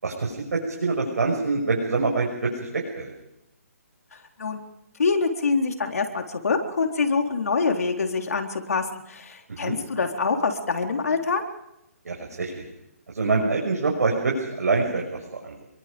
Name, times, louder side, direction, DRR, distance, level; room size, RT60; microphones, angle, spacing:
voice 1, 0.0-3.1 9.5-9.8 12.0-12.6 13.1-15.6, right 3 dB, 85° right, -1 dB, 6.2 m, -25 dB
voice 2, 5.0-11.4, left 4 dB, 75° left, 3 dB, 3.9 m, -25 dB
28.0 x 22.5 x 5.3 m, 0.87 s
hypercardioid pair, 170°, 8 cm